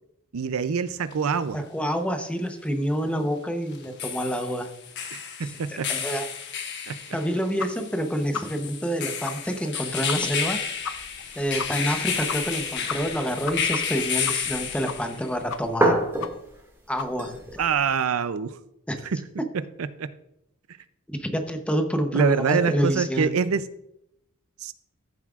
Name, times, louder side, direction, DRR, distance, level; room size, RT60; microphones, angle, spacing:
voice 1, 0.3-1.6 5.1-5.9 6.9-7.0 17.6-18.6 19.0-19.2 20.0-20.1 22.1-23.6 24.6-24.7, right 6 dB, 80° right, 14 dB, 0.5 m, -25 dB
sound 1, 1.1-1.2 3.7-15.3, left 7 dB, 55° left, 1.1 m, -31 dB
voice 2, 1.5-4.7 5.4-6.3 7.1-11.0 11.4-16.0 16.9-17.6 18.9-19.0 21.1-23.4, equal, 5° left, 5 dB, 0.8 m, -28 dB
sound 2, 7.6-7.7 8.0-8.1 8.3-8.4 8.8-8.9 9.2-9.3 9.6-9.7 10.1-10.2 10.4-10.5 10.8-10.9 11.2-11.3 11.6-11.7 12.0-12.1 12.3-12.6 12.9-14.6 14.9-15.2 15.5-15.9 16.2-16.3 16.6-16.7 17.0-17.1, left 6 dB, 85° left, 0.6 m, -33 dB
sound 3, 10.1-17.9, right 1 dB, 10° right, 2.0 m, -32 dB
14.0 x 7.4 x 2.4 m, 0.81 s
head